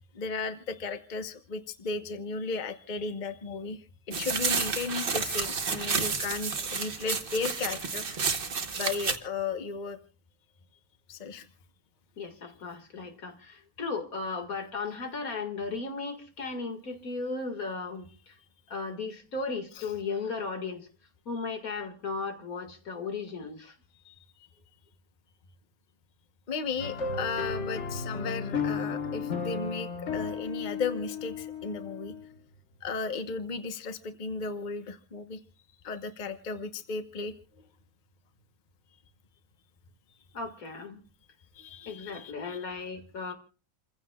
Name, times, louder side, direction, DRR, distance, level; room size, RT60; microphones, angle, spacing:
voice 1, 0.1-8.2 8.7-10.0 11.1-11.5 19.7-19.9 24.0-24.1 26.5-32.1 32.8-35.4 35.8-37.3 41.5-42.6, left 4 dB, 35° left, 8 dB, 1.1 m, -35 dB
sound 1, 4.1-9.2, right 5 dB, 40° right, 1.2 m, -30 dB
voice 2, 12.2-18.0 18.7-20.9 21.3-23.7 40.3-41.0 41.9-43.3, left 4 dB, 80° left, 5 dB, 2.5 m, -36 dB
sound 2, 26.8-32.4, left 5 dB, 55° left, 1.5 m, -34 dB
29.0 x 15.5 x 2.3 m, 0.36 s
omnidirectional pair, 1.5 m